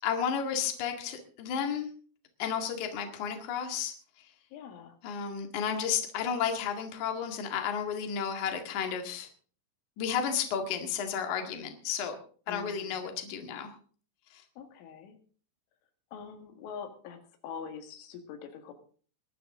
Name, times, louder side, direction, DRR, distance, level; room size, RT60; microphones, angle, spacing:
voice 1, 0.0-1.9 2.4-3.9 5.0-9.3 10.0-12.1 12.5-13.7 14.3-14.4, left 7 dB, 50° left, 5 dB, 2.9 m, -32 dB
voice 2, 4.5-5.0 12.5-13.1 14.6-15.2 16.1-18.7, left 6 dB, 90° left, 6 dB, 4.3 m, -44 dB
22.0 x 11.0 x 3.8 m, 0.43 s
omnidirectional pair, 5.4 m